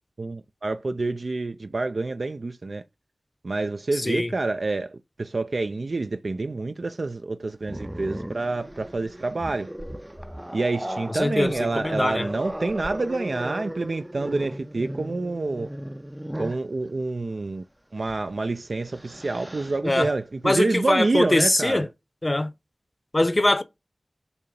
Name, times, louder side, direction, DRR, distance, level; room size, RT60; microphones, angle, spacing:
voice 1, 0.2-2.8 3.4-9.7 10.5-15.7 16.4-17.6 17.9-21.8, right 3 dB, 70° right, 0.4 m, -27 dB
voice 2, 3.9-4.3 11.1-12.3 19.8-20.1 20.4-21.9 22.2-22.5 23.1-23.6, left 1 dB, 35° left, 0.7 m, -22 dB
Growling, 7.6-16.7 18.0-18.2 18.6-19.8, right 1 dB, 15° right, 0.4 m, -36 dB
6.9 x 2.9 x 5.1 m
wide cardioid pair, 50°, 0 cm